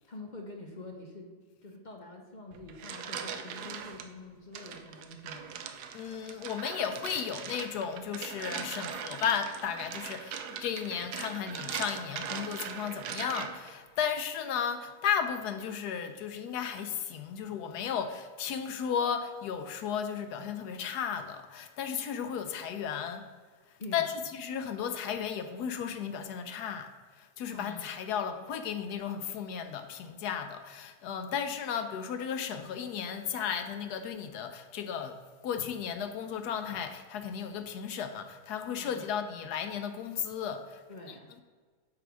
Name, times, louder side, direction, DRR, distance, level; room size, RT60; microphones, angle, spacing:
voice 1, 0.1-1.3 1.6-5.7 23.8-24.3 27.5-27.9 38.8-39.2 40.9-41.3, left 2 dB, 45° left, 1 dB, 0.6 m, -46 dB
sound 1, 2.5-4.1 4.5-13.7, right 7 dB, 75° right, 1.2 m, -40 dB
voice 2, 5.9-23.2 23.9-26.9 27.4-35.2 35.4-40.8, left 7 dB, 75° left, 8 dB, 1.1 m, -34 dB
8.5 x 3.5 x 6.1 m, 1.6 s
omnidirectional pair, 1.8 m